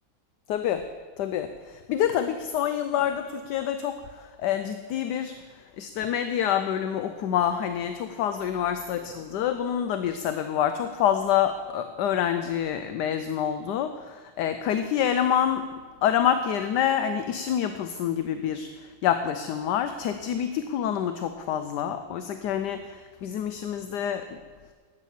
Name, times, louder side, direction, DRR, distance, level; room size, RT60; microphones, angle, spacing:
voice 1, 0.5-0.8 1.2-1.5 1.9-3.9 4.4-5.3 5.8-13.9 14.4-15.7 16.0-18.7 19.0-22.8 23.2-24.3, left 9 dB, 70° left, 9 dB, 1.1 m, -26 dB
11.5 x 8.3 x 7.3 m, 1.5 s
omnidirectional pair, 2.1 m